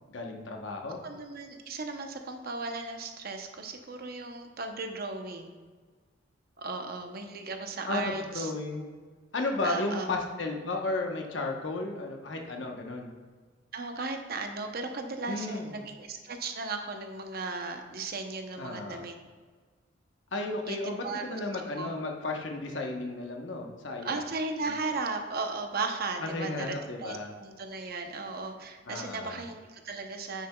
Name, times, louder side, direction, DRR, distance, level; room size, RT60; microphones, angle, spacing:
voice 1, 0.1-1.0 7.9-8.9 9.3-13.1 15.3-15.8 18.6-19.1 20.3-24.2 24.6-24.7 26.2-27.3 28.9-29.4, left 2 dB, 75° left, 2 dB, 1.0 m, -34 dB
voice 2, 1.0-5.5 6.6-8.5 9.6-10.1 13.7-19.2 20.7-21.4 21.7-21.9 24.0-30.5, right 3 dB, 55° right, 5 dB, 0.7 m, -36 dB
9.3 x 6.7 x 2.3 m, 1.5 s
head